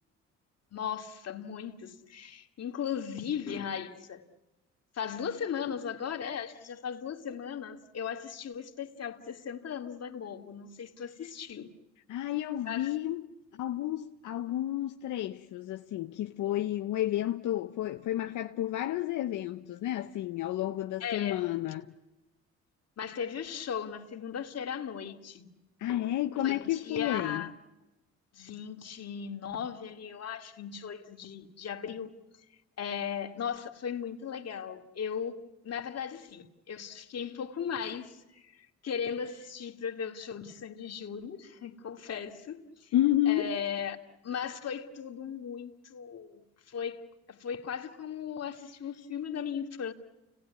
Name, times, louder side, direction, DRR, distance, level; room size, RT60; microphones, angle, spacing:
voice 1, 0.7-4.3 4.9-11.7 12.6-12.9 21.0-21.4 23.0-25.5 26.4-27.5 28.3-32.1 32.8-35.4 35.6-38.6 38.8-42.9 43.3-44.0 44.2-47.0 47.3-49.9, left 7 dB, 55° left, 2.4 m, -37 dB
voice 2, 12.1-21.9 25.8-27.4 42.9-43.5, left 13 dB, 80° left, 0.9 m, -31 dB
30.0 x 19.0 x 9.6 m
cardioid pair, 90°, 30 cm